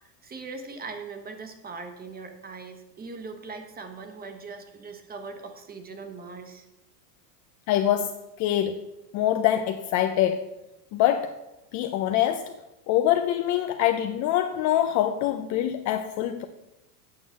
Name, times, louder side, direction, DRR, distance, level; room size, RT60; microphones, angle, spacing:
voice 1, 0.0-6.7, right 4 dB, 20° right, 1.2 m, -40 dB
voice 2, 7.7-8.8 9.1-10.5 10.9-11.4 11.7-12.5 12.9-16.4, left 11 dB, 40° left, 0.5 m, -24 dB
8.7 x 5.4 x 7.2 m
supercardioid pair, 125°, 49 cm